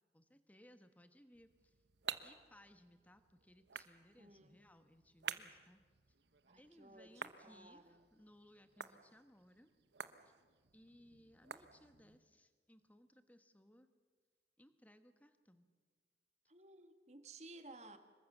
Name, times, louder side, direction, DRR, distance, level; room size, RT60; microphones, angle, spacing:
voice 1, 0.1-1.8 2.2-5.8 6.5-9.7 10.2-10.3 10.7-13.9 14.6-15.7, equal, 10° left, 9 dB, 1.3 m, -64 dB
sound 1, 1.3-12.2, right 7 dB, 80° right, 1.1 m, -52 dB
voice 2, 4.2-4.6 6.5-8.0 16.5-18.0, right 2 dB, 40° right, 9 dB, 1.6 m, -57 dB
26.0 x 22.5 x 6.7 m, 1.5 s
head